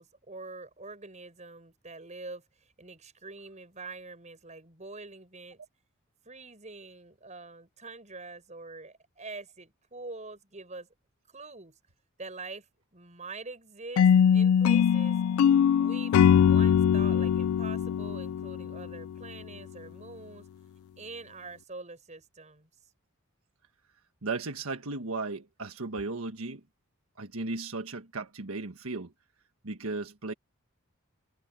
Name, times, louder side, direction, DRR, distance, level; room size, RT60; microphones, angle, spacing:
voice 1, 0.0-5.6 6.2-10.9 11.3-11.8 12.2-15.2 15.8-20.5 21.0-22.7, right 3 dB, 35° right, 7.4 m, -45 dB
sound 1, 14.0-19.1, left 8 dB, 75° left, 0.3 m, -22 dB
voice 2, 24.2-26.6 27.2-29.1 29.6-30.3, right 3 dB, 85° right, 1.5 m, -35 dB
head